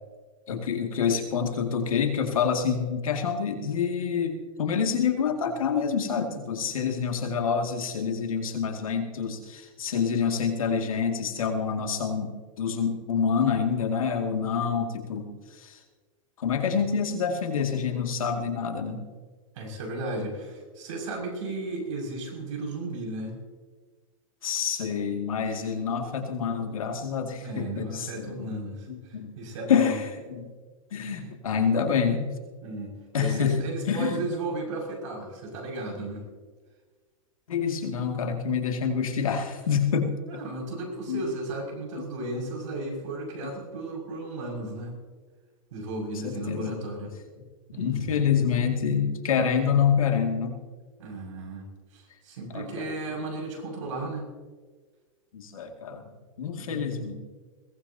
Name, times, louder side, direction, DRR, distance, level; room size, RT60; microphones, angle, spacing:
voice 1, 0.5-15.8 16.4-19.1 24.4-28.5 28.9-29.3 29.7-30.5 30.9-32.3 33.1-34.2 37.5-40.2 41.1-41.3 42.0-42.1 46.2-46.9 47.8-50.6 52.5-52.9 55.3-56.0 56.4-57.1, left 6 dB, 85° left, 4 dB, 2.3 m, -27 dB
voice 2, 19.5-23.4 27.4-28.8 29.4-30.0 32.6-36.3 40.3-44.9 45.7-47.1 47.7-48.1 51.0-51.7 51.9-54.3 56.6-57.1, right 2 dB, 70° right, 0 dB, 6.1 m, -34 dB
21.5 x 19.0 x 2.8 m, 1.4 s
hypercardioid pair, 120°, 17 cm